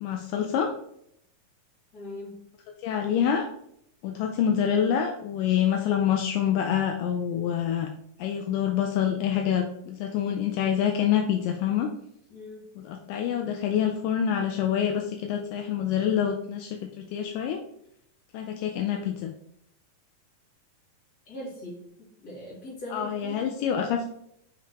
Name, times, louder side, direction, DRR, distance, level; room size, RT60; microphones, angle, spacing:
voice 1, 0.0-0.7 2.8-3.5 4.0-7.9 8.2-11.9 12.8-17.6 18.3-19.3 22.9-24.1, left 9 dB, 80° left, 3 dB, 2.1 m, -26 dB
voice 2, 1.9-2.3 12.3-12.6 21.3-23.5, left 1 dB, 30° left, -6 dB, 2.7 m, -40 dB
6.9 x 6.0 x 2.9 m, 0.74 s
omnidirectional pair, 3.9 m